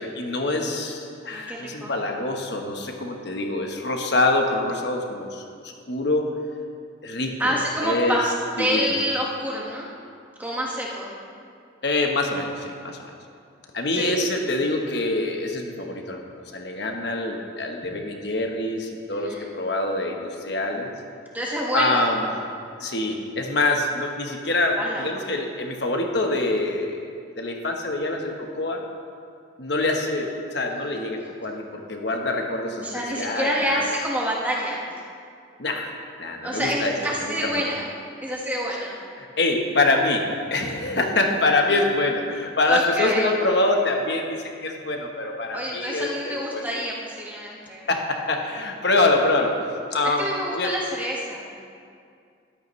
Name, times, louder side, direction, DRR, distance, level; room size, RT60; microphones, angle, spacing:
voice 1, 0.0-6.3 7.0-7.5 7.8-8.2 8.6-8.8 11.8-13.0 13.7-20.9 21.7-22.2 22.8-27.1 27.4-28.8 29.6-33.9 35.6-35.9 36.2-36.9 37.2-37.6 39.2-46.7 47.9-49.6 49.9-50.7, left 2 dB, 60° left, 2 dB, 1.2 m, -25 dB
voice 2, 1.3-1.9 7.4-9.9 10.4-11.2 13.9-14.2 17.8-17.9 19.1-19.5 21.3-22.2 24.8-25.1 32.8-34.8 36.4-37.9 38.2-39.0 42.7-43.3 45.5-47.9 50.2-51.5, equal, 10° right, -4 dB, 1.5 m, -27 dB
14.0 x 12.5 x 3.2 m, 2.3 s
head